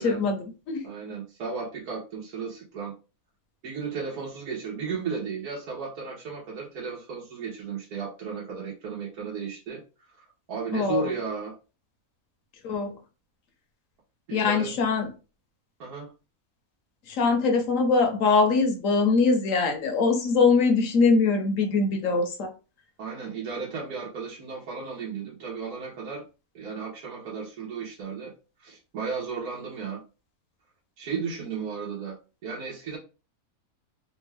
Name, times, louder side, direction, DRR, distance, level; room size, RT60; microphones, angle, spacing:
voice 1, 0.0-0.9 10.7-11.1 12.6-13.0 14.3-15.1 17.1-22.5, left 4 dB, 65° left, 1.0 m, -23 dB
voice 2, 0.8-2.9 3.6-9.8 10.5-11.5 14.3-14.7 15.8-16.1 23.0-26.2 26.5-28.3 28.6-30.0 31.0-32.2 32.4-33.0, right 5 dB, 85° right, 1.5 m, -34 dB
3.6 x 2.3 x 3.3 m
omnidirectional pair, 1.6 m